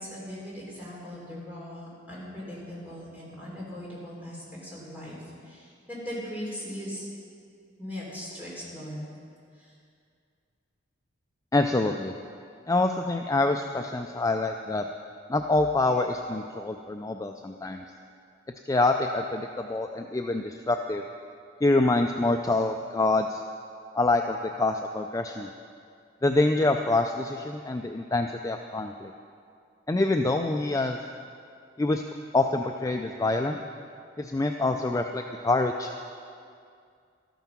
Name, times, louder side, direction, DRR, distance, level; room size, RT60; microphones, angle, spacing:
voice 1, 0.0-7.1 7.8-9.0 9.6-9.7, equal, 10° right, -7 dB, 3.6 m, -39 dB
voice 2, 11.5-12.1 12.7-14.8 15.3-17.8 18.7-21.0 21.6-23.4 23.9-25.5 26.2-29.1 29.9-31.0 31.8-32.0 32.3-33.6 34.2-36.0, left 2 dB, 15° left, 4 dB, 0.3 m, -26 dB
13.0 x 9.2 x 6.0 m, 2.3 s
head